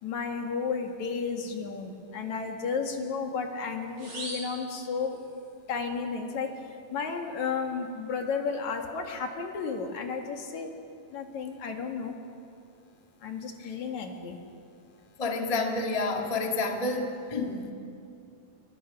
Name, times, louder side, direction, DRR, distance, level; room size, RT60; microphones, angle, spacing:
voice 1, 0.0-5.2 5.7-6.5 6.9-10.7 11.1-12.1 13.2-14.4, left 5 dB, 60° left, 3 dB, 3.0 m, -33 dB
sound 1, 4.0-5.5, right 1 dB, 55° right, 8.7 m, -42 dB
voice 2, 15.2-17.7, left 3 dB, 20° left, 2 dB, 1.0 m, -29 dB
27.0 x 23.0 x 5.9 m, 2.5 s
omnidirectional pair, 4.0 m